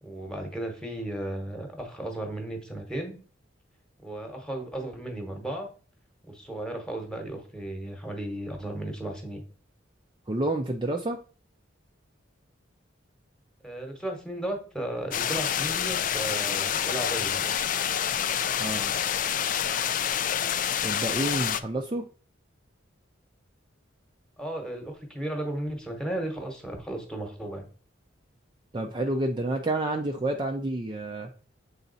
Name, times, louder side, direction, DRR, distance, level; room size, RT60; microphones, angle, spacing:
voice 1, 0.0-3.2 4.0-5.7 6.2-9.4 13.6-17.6 24.4-27.7, right 1 dB, 5° left, 2 dB, 1.2 m, -35 dB
voice 2, 10.3-11.2 18.6-18.9 20.8-22.0 28.7-31.3, right 1 dB, 25° right, 3 dB, 0.5 m, -29 dB
sound 1, 15.1-21.6, left 9 dB, 45° left, 0.4 m, -27 dB
7.0 x 3.9 x 4.0 m, 0.40 s
head